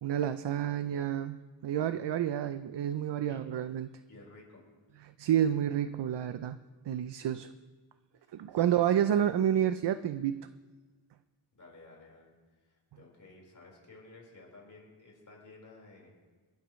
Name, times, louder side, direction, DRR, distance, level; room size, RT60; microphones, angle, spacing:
voice 1, 0.0-3.9 5.2-6.6 6.9-7.5 8.3-10.5, right 10 dB, 70° right, 11 dB, 0.6 m, -29 dB
voice 2, 4.1-4.6 8.2-8.8 11.5-12.3 12.6-16.1, left 3 dB, 45° left, -2 dB, 4.5 m, -54 dB
30.0 x 11.5 x 3.1 m, 1.4 s
wide cardioid pair, 175°, 44 cm